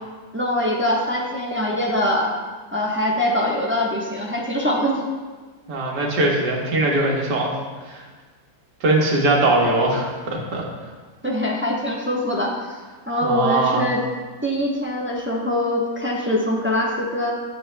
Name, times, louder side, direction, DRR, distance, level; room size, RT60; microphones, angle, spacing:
voice 1, 0.3-2.3 2.7-5.0 11.2-12.5 13.1-14.0 14.4-17.3, left 1 dB, 10° right, -3 dB, 0.6 m, -23 dB
voice 2, 5.7-7.5 7.9-8.0 8.8-10.6 13.2-13.8, right 2 dB, 70° right, -2 dB, 1.9 m, -20 dB
10.5 x 7.9 x 2.2 m, 1.4 s
omnidirectional pair, 1.9 m